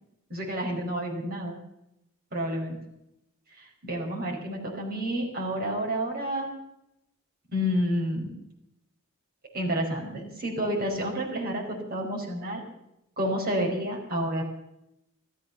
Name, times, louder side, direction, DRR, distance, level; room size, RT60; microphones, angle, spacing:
voice 1, 0.3-1.6 2.3-2.8 3.5-6.5 7.5-8.4 9.5-12.6 13.2-14.4, equal, 40° right, -1 dB, 5.1 m, -29 dB
15.0 x 13.5 x 6.8 m, 0.85 s
head